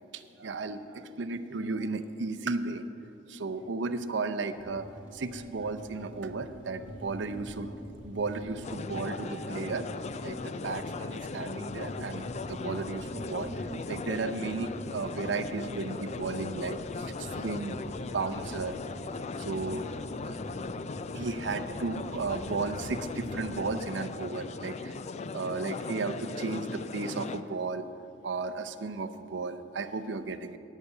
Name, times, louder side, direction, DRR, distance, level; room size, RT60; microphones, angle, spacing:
voice 1, 0.4-2.9 3.3-7.8 8.0-9.9 10.2-17.8 18.1-19.9 20.2-20.4 21.1-25.0 25.3-27.9 28.2-30.6, right 3 dB, 75° right, 11 dB, 0.6 m, -34 dB
sound 1, 4.5-23.8, equal, 5° right, 2.3 m, -46 dB
sound 2, 8.6-27.4, left 3 dB, 35° left, 0.4 m, -38 dB
10.0 x 8.2 x 8.1 m, 2.8 s
head